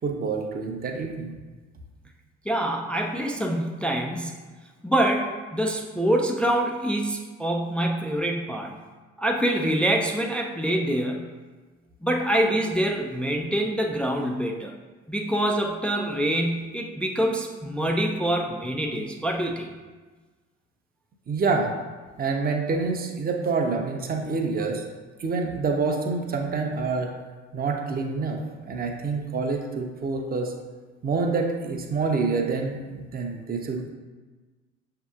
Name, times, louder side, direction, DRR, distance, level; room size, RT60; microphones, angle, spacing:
voice 1, 0.0-1.3 21.3-21.7 22.2-24.8 25.2-27.1 27.5-28.4 28.7-30.5 31.0-32.8 33.1-33.9, right 4 dB, 25° right, 2 dB, 0.7 m, -27 dB
voice 2, 2.5-4.4 4.8-8.7 9.2-11.3 12.0-14.7 15.1-19.7, right 1 dB, 5° left, 1 dB, 0.4 m, -25 dB
6.8 x 2.8 x 2.4 m, 1.3 s
hypercardioid pair, 60°, 35 cm